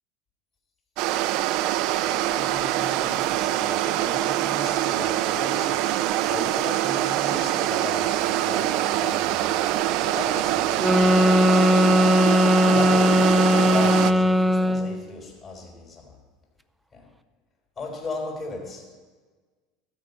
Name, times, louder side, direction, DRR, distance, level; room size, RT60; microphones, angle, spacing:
sound 1, 1.0-14.1, right 13 dB, 60° right, 0.5 m, -24 dB
voice 1, 2.0-11.8 12.7-16.2 16.9-17.1 17.8-18.8, left 3 dB, 30° left, 0 dB, 3.9 m, -36 dB
sound 2, 10.8-15.0, left 1 dB, 5° right, 0.5 m, -19 dB
13.0 x 5.4 x 8.4 m, 1.4 s
supercardioid pair, 130°, 0 cm